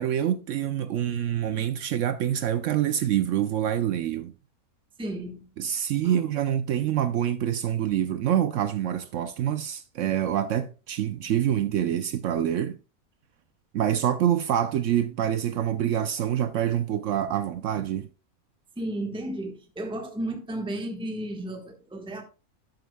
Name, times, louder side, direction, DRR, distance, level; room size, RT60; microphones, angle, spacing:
voice 1, 0.0-4.3 5.6-12.8 13.7-18.1, right 10 dB, 65° right, 0.8 m, -26 dB
voice 2, 5.0-5.5 6.0-6.2 18.8-22.2, right 1 dB, 5° right, 1.1 m, -33 dB
12.5 x 7.9 x 2.2 m
omnidirectional pair, 1.5 m